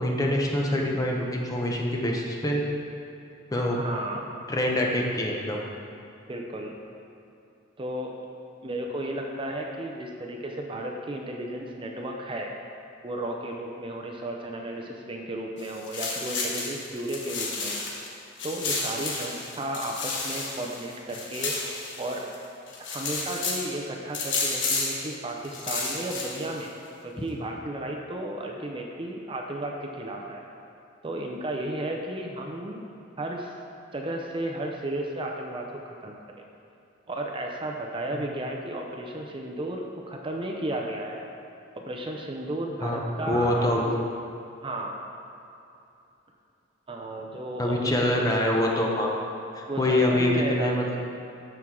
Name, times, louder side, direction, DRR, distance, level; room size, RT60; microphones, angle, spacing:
voice 1, 0.0-2.7 3.5-3.8 4.5-5.6 38.1-38.2 42.8-44.0 47.6-49.1 49.5-50.8, left 1 dB, 20° left, -1 dB, 0.8 m, -25 dB
voice 2, 3.5-4.2 6.3-6.7 7.8-8.2 8.6-12.5 13.0-17.8 18.4-21.6 22.0-22.3 22.9-26.7 27.0-30.4 31.0-32.8 33.2-33.6 33.9-36.2 37.1-41.2 41.9-44.0 44.6-45.0 46.9-48.4 49.7-50.8, right 1 dB, 25° right, 1 dB, 0.6 m, -33 dB
sound 1, 15.6-18.1 18.4-22.4 22.7-23.7 24.1-25.1 25.4-26.6, left 3 dB, 70° left, 1.2 m, -31 dB
12.0 x 4.5 x 3.7 m, 2.7 s
head